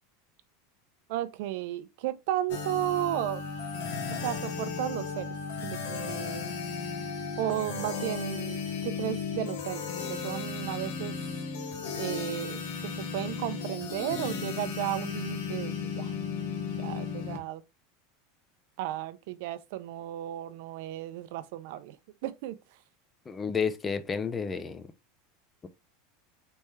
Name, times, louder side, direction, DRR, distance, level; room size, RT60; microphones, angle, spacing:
voice 1, 1.1-3.4 4.1-5.3 5.6-6.5 7.4-11.1 12.0-16.1 16.8-17.6 18.8-22.0 22.2-22.6, right 13 dB, 65° right, 0.6 m, -34 dB
sound 1, 2.5-17.4, left 5 dB, 80° left, 1.3 m, -35 dB
voice 2, 23.3-24.9, left 6 dB, 15° left, 0.5 m, -31 dB
4.2 x 3.5 x 3.2 m
supercardioid pair, 145°, 0 cm